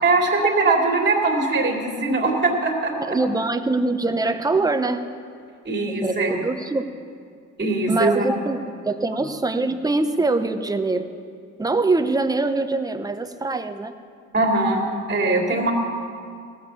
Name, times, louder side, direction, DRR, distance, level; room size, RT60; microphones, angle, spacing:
voice 1, 0.0-3.2 5.6-6.4 7.6-8.3 14.3-15.7, right 3 dB, 35° right, 0 dB, 2.6 m, -21 dB
voice 2, 3.0-5.1 5.8-6.9 7.9-11.1 11.6-14.0, right 3 dB, 10° right, 8 dB, 0.8 m, -23 dB
16.5 x 7.1 x 7.0 m, 2.2 s
cardioid pair, 90°, 30 cm